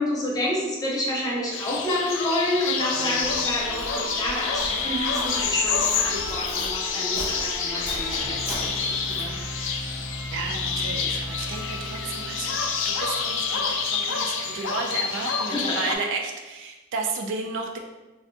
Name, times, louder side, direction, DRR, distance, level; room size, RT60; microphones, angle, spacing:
voice 1, 0.0-9.3 15.5-15.9, left 1 dB, 20° left, -4 dB, 0.7 m, -29 dB
sound 1, 1.5-16.0, left 5 dB, 60° left, 0.3 m, -28 dB
sound 2, 2.9-15.4, right 1 dB, 80° right, 0.8 m, -38 dB
Walk footsteps, 3.2-9.4, equal, 35° right, 0.8 m, -39 dB
voice 2, 10.3-12.6 12.8-17.8, right 4 dB, 55° right, 3 dB, 0.3 m, -32 dB
3.2 x 2.5 x 2.6 m, 1.2 s
head